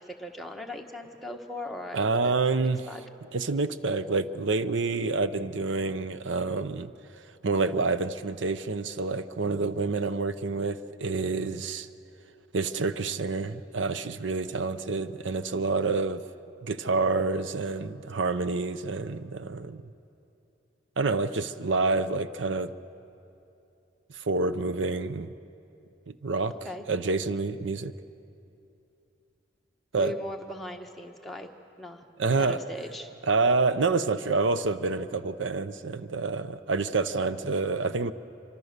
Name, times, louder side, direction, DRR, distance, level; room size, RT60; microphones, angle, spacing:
voice 1, 0.0-3.0 26.6-26.8 30.0-31.5 31.8-32.1 32.4-33.1, left 1 dB, ahead, 1 dB, 1.2 m, -39 dB
voice 2, 1.9-2.9 3.3-6.9 7.4-11.9 12.5-16.2 16.6-19.8 21.0-22.7 24.1-25.3 26.2-26.5 26.9-27.9 29.9-30.1 32.2-32.6 33.3-38.1, right 3 dB, 85° right, 13 dB, 0.7 m, -28 dB
25.0 x 25.0 x 6.7 m, 2.7 s
head